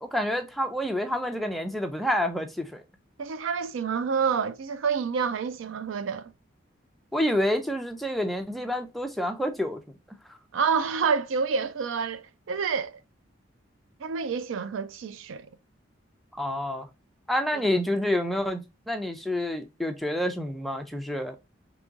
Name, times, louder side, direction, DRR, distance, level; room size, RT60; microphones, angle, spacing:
voice 1, 0.0-2.8 7.1-9.8 10.3-10.4 16.3-16.9 17.3-21.4, left 1 dB, ahead, 0.5 m, -28 dB
voice 2, 3.2-6.3 10.5-13.0 14.0-15.5 17.5-17.6, right 6 dB, 75° right, 0.4 m, -28 dB
3.7 x 3.0 x 3.7 m
head